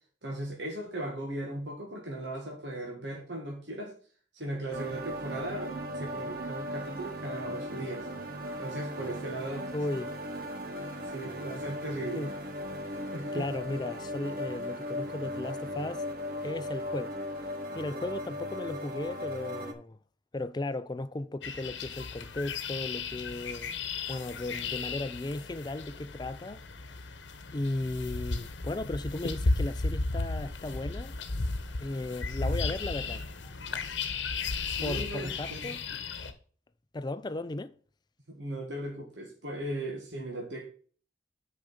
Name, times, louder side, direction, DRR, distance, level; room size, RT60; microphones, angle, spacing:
voice 1, 0.2-4.0 4.3-8.1 8.6-9.8 11.1-12.3 13.1-13.5 34.6-36.0 38.3-40.7, right 1 dB, 65° right, 1.7 m, -38 dB
sound 1, 4.7-19.7, equal, 50° right, 1.1 m, -37 dB
voice 2, 9.7-10.2 12.2-12.3 13.3-16.0 16.4-17.2 17.7-20.0 20.3-23.7 24.1-26.6 26.9-27.0 27.5-31.2 31.8-33.2 34.8-35.8 36.9-37.7, left 2 dB, 20° left, 0.4 m, -36 dB
sound 2, 21.4-36.3, left 3 dB, 75° left, 1.0 m, -34 dB
6.3 x 5.1 x 5.7 m
head